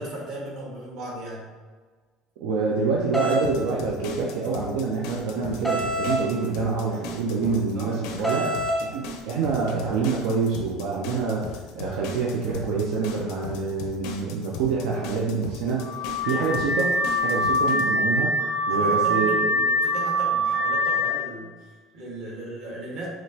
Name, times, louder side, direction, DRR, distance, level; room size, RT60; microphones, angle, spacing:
voice 1, 0.0-1.5 7.7-8.5 15.8-16.3 18.0-18.2 18.7-23.1, right 1 dB, 55° right, -4 dB, 1.4 m, -37 dB
voice 2, 2.4-18.3 18.7-19.5, right 4 dB, 85° right, -3 dB, 0.6 m, -26 dB
sound 1, 3.1-3.4 5.6-6.2 8.2-8.8, right 1 dB, 5° right, 0.7 m, -25 dB
sound 2, 3.3-17.8, left 3 dB, 80° left, 0.5 m, -38 dB
Car / Alarm, 15.8-21.3, equal, 15° left, 0.3 m, -24 dB
5.0 x 3.0 x 2.8 m, 1.4 s
cardioid pair, 165°, 0 cm